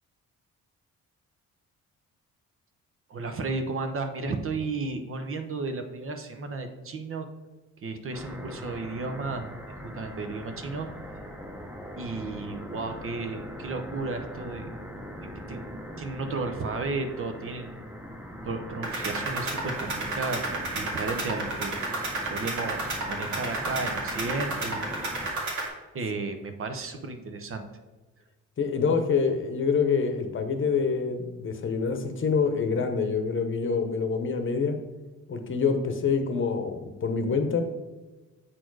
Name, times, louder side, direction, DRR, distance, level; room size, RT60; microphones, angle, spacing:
voice 1, 3.1-7.3 7.8-9.5 9.8-11.2 12.0-14.7 15.5-17.9 18.4-24.9 25.9-27.7, right 3 dB, 45° right, 7 dB, 0.9 m, -34 dB
sound 1, 8.1-25.3, equal, 5° right, 0.9 m, -41 dB
sound 2, 18.8-25.7, right 2 dB, 70° right, 2.0 m, -32 dB
voice 2, 28.6-34.8 35.3-37.6, left 5 dB, 40° left, 7 dB, 0.9 m, -26 dB
7.7 x 4.3 x 4.7 m, 1.1 s
cardioid pair, 90°, 30 cm